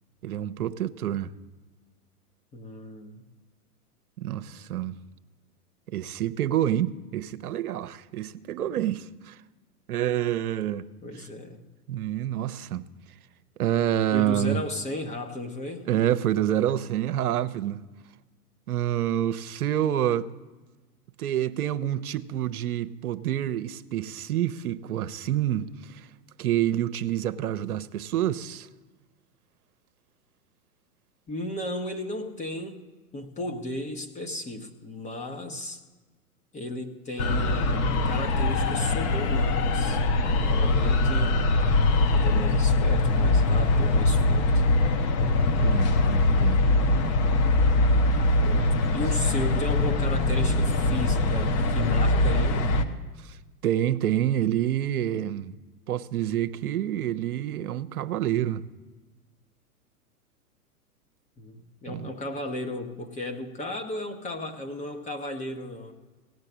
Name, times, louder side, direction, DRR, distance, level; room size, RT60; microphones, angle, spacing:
voice 1, 0.2-1.3 4.2-5.0 5.9-9.4 9.9-10.9 11.2-11.3 11.9-12.9 13.6-14.6 15.9-17.8 18.7-20.3 21.2-26.1 26.4-28.7 45.6-46.6 53.2-53.4 53.6-55.5 55.9-58.6 61.9-62.1, right 11 dB, 70° right, 0.8 m, -27 dB
voice 2, 2.5-3.2 11.0-11.6 14.1-16.0 31.3-32.8 33.1-35.8 36.5-41.4 42.1-44.6 48.4-52.7 61.4-65.9, left 1 dB, 15° left, 1.0 m, -35 dB
sound 1, 37.2-52.8, left 2 dB, 35° left, 1.1 m, -22 dB
17.0 x 6.5 x 7.3 m
hypercardioid pair, 110°, 46 cm